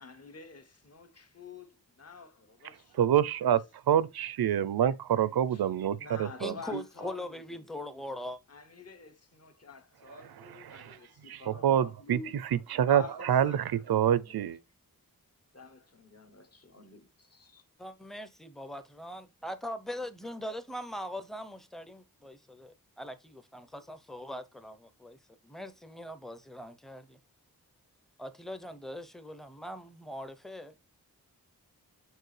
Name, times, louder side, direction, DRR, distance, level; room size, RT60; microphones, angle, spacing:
voice 1, 0.0-3.0 5.5-5.6 6.0-7.7 8.5-12.3 12.9-13.6 14.3-14.4 15.5-17.6, left 4 dB, 40° left, 1.0 m, -48 dB
voice 2, 2.6-6.8 10.1-14.6, right 10 dB, 85° right, 0.5 m, -28 dB
voice 3, 6.4-8.4 17.8-25.2 25.4-27.2 28.2-30.8, left 1 dB, ahead, 0.6 m, -41 dB
6.4 x 4.6 x 3.2 m
wide cardioid pair, 100°, 36 cm